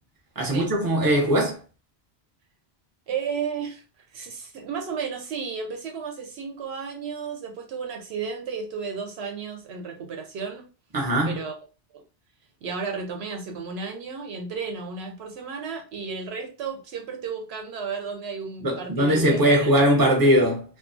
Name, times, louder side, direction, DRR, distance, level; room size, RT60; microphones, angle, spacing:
voice 1, 0.4-1.5 10.9-11.4 18.6-20.6, equal, 25° right, 0.7 m, -20 dB
voice 2, 3.1-3.8 4.1-10.7 11.2-11.5 11.9-12.0 12.6-19.7, right 5 dB, 75° right, 0.8 m, -33 dB
2.4 x 2.3 x 2.5 m
omnidirectional pair, 1.1 m